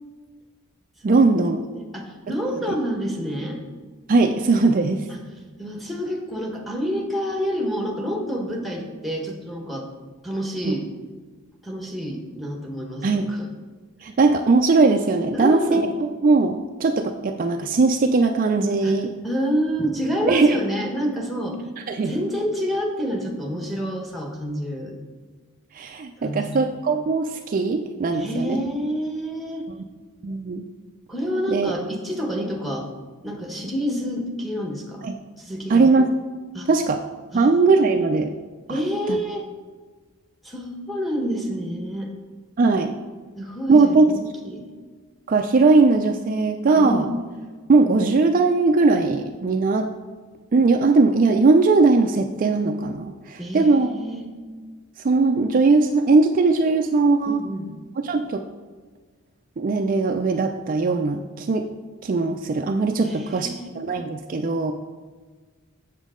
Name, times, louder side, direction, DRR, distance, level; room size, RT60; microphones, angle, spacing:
voice 1, 1.0-1.7 4.1-5.1 10.7-10.8 13.0-13.3 14.0-19.1 20.3-20.6 21.9-22.2 25.7-28.6 30.2-30.7 31.5-31.7 35.0-35.1 35.7-36.1 36.7-37.0 37.3-38.3 38.7-38.8 39.1-39.2 42.6-42.9 43.7-44.1 45.3-47.1 47.7-49.9 50.5-53.9 55.0-57.4 58.0-58.4 59.6-61.7 62.0-63.5 63.7-64.7, right 3 dB, 40° right, 5 dB, 0.4 m, -19 dB
voice 2, 1.7-3.6 5.1-5.2 5.6-9.9 10.2-10.8 11.6-13.5 15.3-15.9 18.8-18.9 19.2-21.6 22.0-24.9 26.2-26.6 28.1-29.6 31.1-32.9 33.2-35.1 35.4-35.9 36.5-36.7 37.3-37.6 38.7-39.5 40.4-42.1 43.4-44.6 46.7-47.2 53.4-54.3 57.3-57.7 63.0-63.7, equal, ahead, 1 dB, 1.1 m, -28 dB
7.3 x 7.2 x 3.7 m, 1.4 s
head